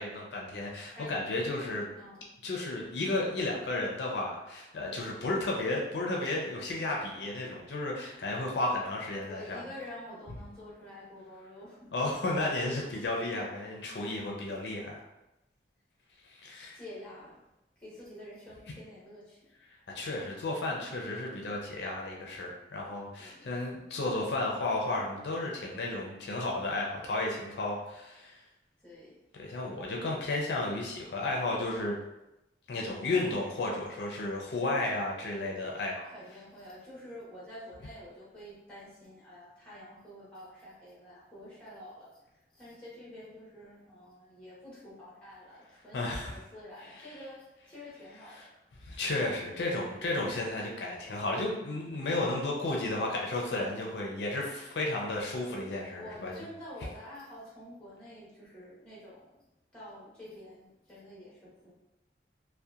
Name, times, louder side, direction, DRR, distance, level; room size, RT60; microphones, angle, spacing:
voice 1, 0.0-1.9 2.4-9.6 11.9-15.0 16.3-16.8 19.9-28.4 29.4-32.0 32.7-36.1 45.9-46.4 46.9-47.1 48.4-48.5 48.8-56.5, left 2 dB, 80° left, -1 dB, 0.5 m, -33 dB
voice 2, 0.9-1.3 2.0-2.2 9.2-11.9 12.5-13.3 16.7-17.3 17.8-19.4 23.2-23.5 28.8-29.1 33.0-33.4 36.0-42.1 42.5-48.5 55.9-59.3 59.7-61.7, left 1 dB, 5° left, -8 dB, 0.9 m, -48 dB
2.7 x 2.1 x 2.3 m, 0.92 s
head